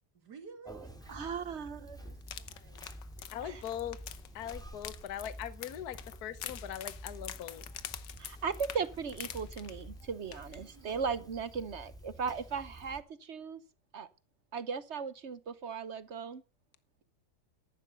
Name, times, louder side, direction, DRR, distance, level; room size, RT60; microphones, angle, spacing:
voice 1, 0.1-2.9 10.5-11.0, right 6 dB, 70° right, 2.9 m, -54 dB
Conversation, 0.7-13.0, equal, ahead, 2.3 m, -49 dB
voice 2, 1.1-2.0 3.4-3.6 8.2-13.6 13.9-14.1 14.5-16.4, right 6 dB, 50° right, 1.0 m, -37 dB
sound 1, 2.2-10.0 10.3-10.6 10.9-11.0, left 11 dB, 90° left, 1.6 m, -45 dB
voice 3, 3.3-4.0 4.3-7.6, left 10 dB, 65° left, 1.4 m, -40 dB
14.0 x 11.5 x 6.8 m
omnidirectional pair, 1.9 m